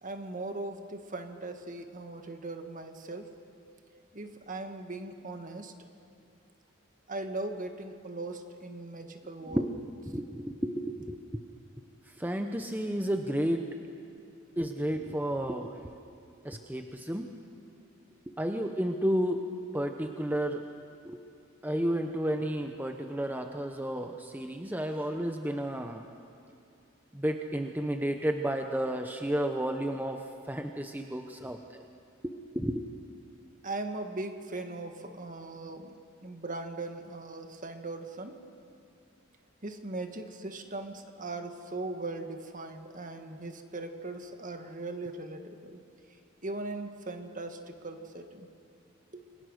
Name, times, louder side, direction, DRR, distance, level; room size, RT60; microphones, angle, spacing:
voice 1, 0.0-3.3 4.1-5.7 7.1-9.7 31.4-31.5 33.6-38.4 39.6-45.8 46.4-48.5 49.1-49.2, right 2 dB, 40° right, 6 dB, 1.7 m, -39 dB
voice 2, 10.1-11.4 12.1-13.6 14.6-15.9 16.4-17.3 18.3-19.4 19.7-20.6 21.0-21.2 21.6-26.0 27.1-31.8 32.2-32.9, right 1 dB, 10° right, 5 dB, 0.8 m, -32 dB
28.5 x 22.5 x 6.5 m, 2.5 s
head